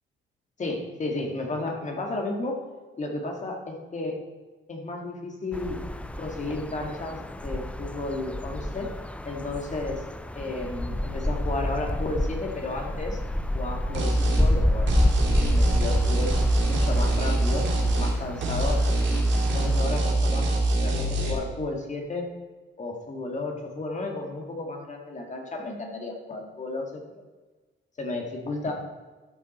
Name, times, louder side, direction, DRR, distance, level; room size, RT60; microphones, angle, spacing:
voice 1, 0.6-2.6 3.0-4.2 4.7-5.8 6.2-8.9 9.2-10.0 10.4-13.2 13.5-15.0 15.3-16.4 16.7-18.8 19.5-20.5 20.8-22.3 22.8-27.0 28.0-28.7, left 2 dB, 35° left, 1 dB, 2.1 m, -33 dB
sound 1, 5.5-19.8, left 1 dB, 5° left, 0.4 m, -29 dB
sound 2, 13.9-14.5 14.9-18.2 18.4-21.3, right 1 dB, 65° right, 2.4 m, -24 dB
13.0 x 6.0 x 4.3 m, 1.3 s
cardioid pair, 90°, 20 cm